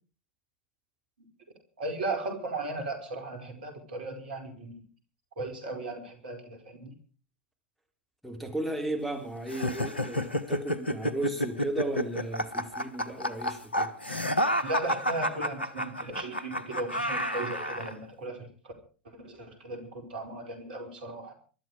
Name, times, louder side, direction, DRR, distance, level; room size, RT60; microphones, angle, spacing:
voice 1, 1.8-4.8 5.4-6.9 14.6-18.7 19.0-21.3, right 2 dB, 60° right, 4 dB, 4.9 m, -36 dB
voice 2, 8.2-13.9, right 1 dB, ahead, 4 dB, 3.7 m, -35 dB
sound 1, 9.5-17.9, equal, 85° left, 1.3 m, -30 dB
23.5 x 12.5 x 5.0 m, 0.40 s
figure-of-eight pair, 90°, 6 cm